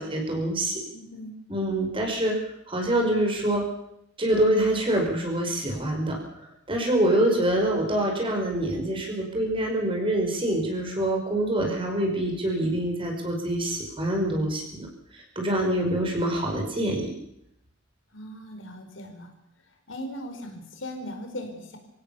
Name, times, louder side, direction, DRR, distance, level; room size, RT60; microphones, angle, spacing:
voice 1, 0.0-0.8 1.5-2.3 2.7-3.6 4.2-6.2 6.7-14.9 15.1-17.1, right 1 dB, 25° right, 1 dB, 5.4 m, -25 dB
voice 2, 0.9-1.4 18.1-19.3 19.9-21.8, equal, 75° left, 5 dB, 4.6 m, -38 dB
26.5 x 16.5 x 7.1 m, 0.78 s
head